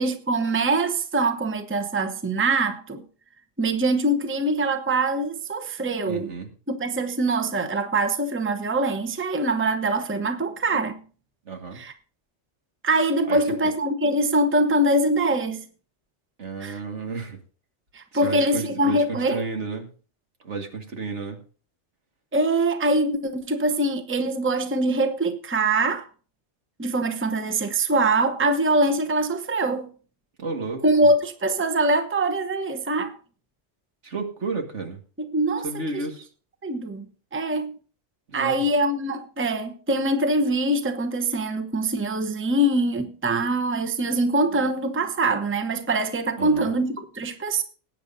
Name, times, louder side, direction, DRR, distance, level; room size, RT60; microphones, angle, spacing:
voice 1, 0.0-3.0 3.6-6.3 6.7-11.0 11.7-11.9 12.8-15.6 16.6-16.8 17.9-19.4 22.3-26.1 26.8-29.9 30.8-33.2 35.2-35.7 35.9-36.0 36.6-37.8 38.3-47.6, right 2 dB, 10° right, 0.8 m, -23 dB
voice 2, 6.1-6.5 11.5-11.8 13.3-13.5 16.4-17.4 18.1-19.9 20.4-21.4 30.4-31.1 34.0-35.0 35.6-36.3 38.3-38.6 46.4-46.7, right 3 dB, 75° right, 2.2 m, -32 dB
19.5 x 9.3 x 2.7 m
omnidirectional pair, 1.2 m